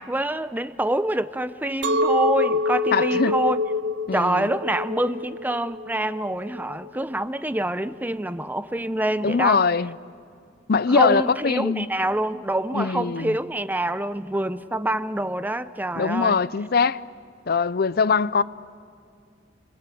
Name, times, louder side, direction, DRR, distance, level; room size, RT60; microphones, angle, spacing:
voice 1, 0.0-3.6 4.1-9.6 10.9-16.4, right 1 dB, 10° right, 0.7 m, -26 dB
Chink clink, 1.8-7.0, left 2 dB, 75° right, 1.5 m, -26 dB
voice 2, 2.9-3.4 4.1-4.5 9.2-9.9 10.7-11.9 12.7-13.4 16.0-17.0 17.5-18.4, left 5 dB, 55° left, 0.6 m, -22 dB
30.0 x 22.0 x 8.5 m
head